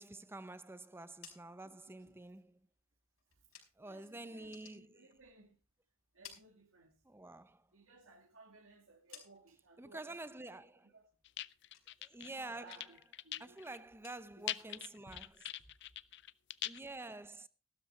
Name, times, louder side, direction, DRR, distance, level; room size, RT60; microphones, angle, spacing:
voice 1, 0.0-2.7 3.8-5.2 7.0-7.7 9.8-10.9 12.0-13.0 13.4-15.5 16.6-17.5, right 2 dB, 10° right, 0.6 m, -49 dB
sound 1, 0.9-4.0 4.3-5.6 5.9-7.3 7.6-9.8 10.1-10.6 10.9-12.3 12.5-13.1 13.4-16.2, left 7 dB, 80° left, 5.1 m, -61 dB
voice 2, 1.6-2.2 3.8-5.6 6.1-7.0 7.7-10.3 10.9-11.1 12.2-13.0 13.2-13.6 14.3-14.8, right 3 dB, 80° right, 2.0 m, -61 dB
sound 2, 11.2-12.3 12.7-13.8 14.1-14.2 14.5-16.8, left 13 dB, 60° left, 0.5 m, -42 dB
15.0 x 13.0 x 3.3 m
head